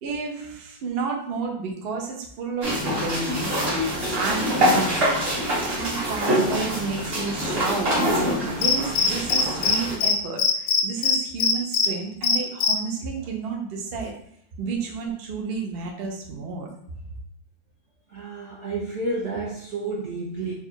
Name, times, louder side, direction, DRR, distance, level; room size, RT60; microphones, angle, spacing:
voice 1, 0.0-5.2 5.7-14.1 14.6-16.7, right 4 dB, 85° right, 1 dB, 0.5 m, -31 dB
sound 1, 2.6-9.9, equal, 35° right, 1.2 m, -25 dB
Cricket, 8.6-9.8 10.0-10.1 10.4-11.9 12.2-12.7, left 6 dB, 75° left, 0.8 m, -20 dB
voice 2, 18.1-20.5, right 2 dB, 60° right, -5 dB, 0.8 m, -30 dB
3.4 x 2.4 x 4.4 m, 0.69 s
omnidirectional pair, 2.0 m